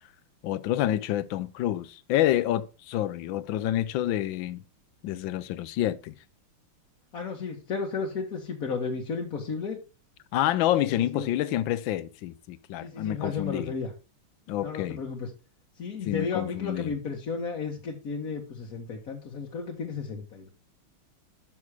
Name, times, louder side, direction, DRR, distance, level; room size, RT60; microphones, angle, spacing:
voice 1, 0.4-4.6 5.0-6.1 10.3-13.7 14.5-15.0 16.0-16.9, left 13 dB, 75° left, 1.2 m, -28 dB
voice 2, 7.1-9.8 10.8-11.3 12.8-13.9 14.6-15.3 15.8-20.5, left 5 dB, 50° left, 1.5 m, -33 dB
7.2 x 6.2 x 4.8 m
omnidirectional pair, 2.3 m